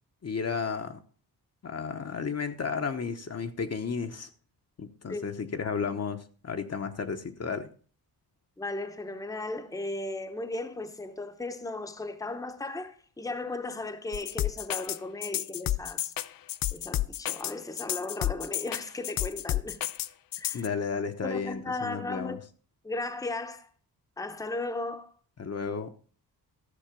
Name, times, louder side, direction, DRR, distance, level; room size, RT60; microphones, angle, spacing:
voice 1, 0.2-1.0 1.6-4.3 4.8-7.7 20.5-22.4 25.4-25.9, left 5 dB, 40° left, 1.0 m, -33 dB
voice 2, 8.6-16.1 16.7-19.8 20.4-20.6 21.2-22.4 22.8-23.7 24.2-25.1, left 2 dB, 10° left, 0.9 m, -36 dB
sound 1, 14.1-20.7, left 13 dB, 60° left, 0.5 m, -31 dB
13.5 x 6.5 x 5.1 m
wide cardioid pair, 110°, 38 cm